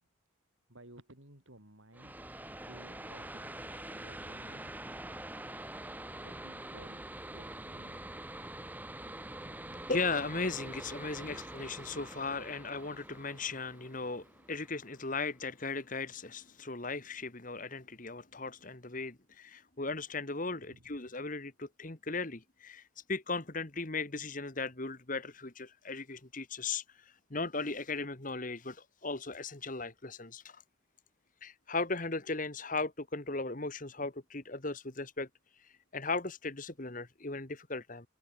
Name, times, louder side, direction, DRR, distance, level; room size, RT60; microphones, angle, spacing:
voice 1, 0.7-4.7 6.2-7.0 7.3-8.1 9.2-9.9 20.5-21.1, right 1 dB, 70° right, 6.4 m, -57 dB
sound 1, 1.9-15.3, right 1 dB, 10° right, 2.2 m, -45 dB
voice 2, 9.9-22.8 23.1-30.6 31.4-35.3 35.6-38.1, left 3 dB, 40° left, 1.7 m, -37 dB
head